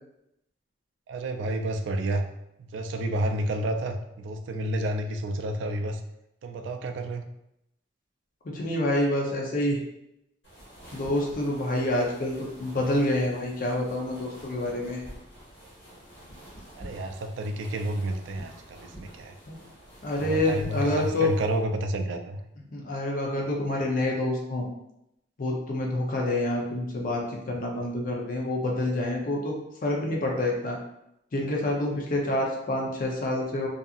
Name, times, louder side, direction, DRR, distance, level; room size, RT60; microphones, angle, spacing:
voice 1, 1.1-2.3 2.6-6.0 6.4-7.2 16.8-19.4 20.2-22.4, right 1 dB, 90° right, 6 dB, 0.3 m, -30 dB
voice 2, 8.4-9.8 10.9-15.0 19.5-19.6 20.0-21.3 22.7-24.7 25.4-30.8 31.3-33.7, left 1 dB, 50° left, -1 dB, 0.6 m, -27 dB
sound 1, 10.4-21.6, right 1 dB, 70° left, 1.3 m, -47 dB
2.7 x 2.4 x 2.4 m, 0.83 s
head